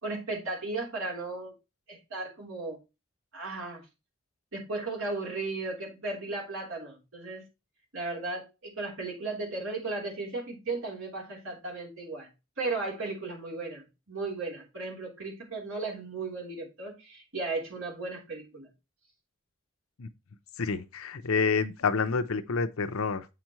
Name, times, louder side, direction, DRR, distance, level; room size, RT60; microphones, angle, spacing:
voice 1, 0.0-1.5 1.9-2.8 3.3-3.9 4.5-7.4 7.9-12.3 12.6-18.7, right 3 dB, 70° right, 3.5 m, -35 dB
voice 2, 20.6-23.3, left 5 dB, 75° left, 0.7 m, -28 dB
8.1 x 5.9 x 3.0 m
head